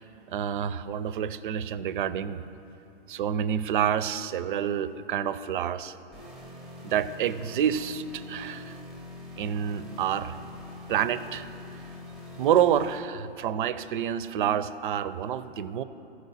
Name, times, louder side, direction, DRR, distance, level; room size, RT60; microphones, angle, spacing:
voice 1, 0.3-2.4 3.1-5.9 6.8-8.7 9.4-10.4 10.9-11.4 12.4-15.8, right 9 dB, 55° right, 14 dB, 0.4 m, -28 dB
sound 1, 6.1-13.0, left 2 dB, ahead, 0.5 m, -44 dB
14.0 x 4.8 x 4.0 m, 3.0 s
hypercardioid pair, 155°, 31 cm